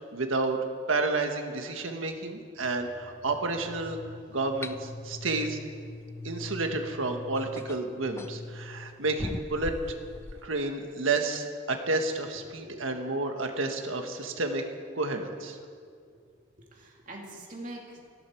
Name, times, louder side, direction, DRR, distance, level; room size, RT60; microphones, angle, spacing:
voice 1, 0.1-0.6 0.9-4.0 4.3-5.6 6.2-9.7 10.4-14.6 14.9-15.6, right 3 dB, 90° right, 4 dB, 1.7 m, -30 dB
sound 1, 2.6-10.4, left 2 dB, 40° left, 1.3 m, -45 dB
sound 2, 4.6-4.8 6.6-6.7 7.4-8.4 9.2-10.5, left 1 dB, 15° left, 0.4 m, -38 dB
voice 2, 12.4-12.9 16.6-18.1, right 1 dB, 40° right, -1 dB, 2.8 m, -44 dB
18.5 x 15.5 x 4.7 m, 2.2 s
head